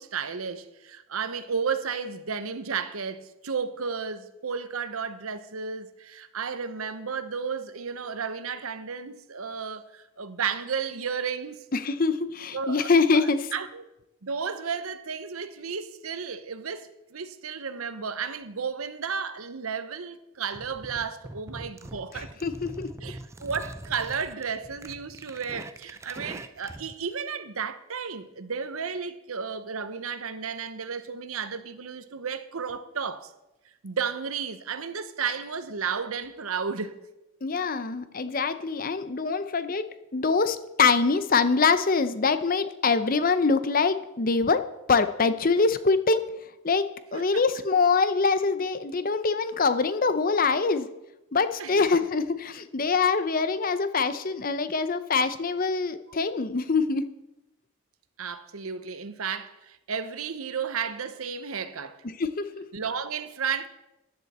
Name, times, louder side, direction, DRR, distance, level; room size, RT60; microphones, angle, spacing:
voice 1, 0.0-11.6 12.5-13.9 14.2-22.4 23.0-33.3 33.8-37.0 47.1-47.4 51.6-51.9 58.2-62.0 62.7-63.7, right 6 dB, 85° right, 0.9 m, -33 dB
voice 2, 11.7-13.4 22.4-22.9 37.4-44.6 44.9-46.2 46.6-50.9 51.3-57.0 62.0-62.7, left 4 dB, 40° left, 0.6 m, -24 dB
sound 1, 20.5-26.9, right 1 dB, 15° right, 0.4 m, -43 dB
14.5 x 10.5 x 4.2 m
head